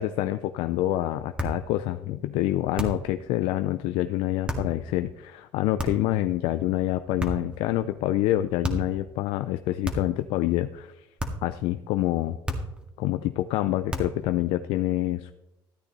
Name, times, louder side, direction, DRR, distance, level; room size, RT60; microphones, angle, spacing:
voice 1, 0.0-11.1 11.4-12.4 13.0-15.3, left 14 dB, 75° left, 10 dB, 0.5 m, -27 dB
sound 1, 1.4-1.7 2.8-3.1 4.5-4.7 5.8-6.2 7.2-7.6 8.6-9.0 9.8-10.2 11.2-11.5 12.5-12.9 13.9-14.3, equal, 10° right, 1.9 m, -31 dB
13.5 x 9.0 x 4.1 m, 0.91 s
supercardioid pair, 85°, 10 cm